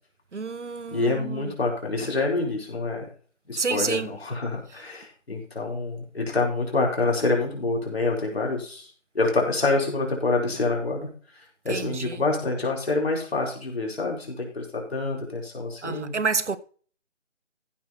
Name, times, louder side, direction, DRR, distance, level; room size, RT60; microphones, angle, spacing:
voice 1, 0.3-1.5 3.6-4.1 11.7-12.2 15.8-16.6, right 4 dB, 65° right, 1.1 m, -29 dB
voice 2, 0.9-3.0 3.5-8.9 9.1-11.1 11.4-16.2, left 3 dB, 50° left, 4.6 m, -27 dB
15.0 x 6.1 x 4.4 m
figure-of-eight pair, 165°, 38 cm